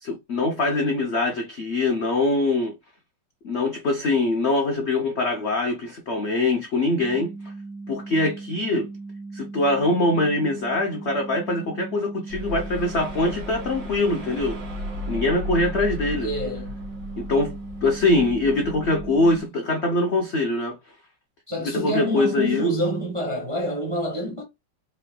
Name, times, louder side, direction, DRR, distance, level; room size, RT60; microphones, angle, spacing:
voice 1, 0.0-2.7 3.4-7.5 7.9-8.9 9.3-14.6 15.1-16.3 17.2-20.8 21.6-22.7, left 2 dB, 60° left, 0.7 m, -23 dB
sound 1, 7.0-19.5, right 3 dB, 75° right, 1.5 m, -38 dB
sound 2, 12.3-19.4, left 1 dB, 50° right, 1.7 m, -35 dB
voice 2, 16.2-16.7 21.5-24.4, equal, 25° right, 0.7 m, -27 dB
5.1 x 3.4 x 2.2 m
omnidirectional pair, 2.1 m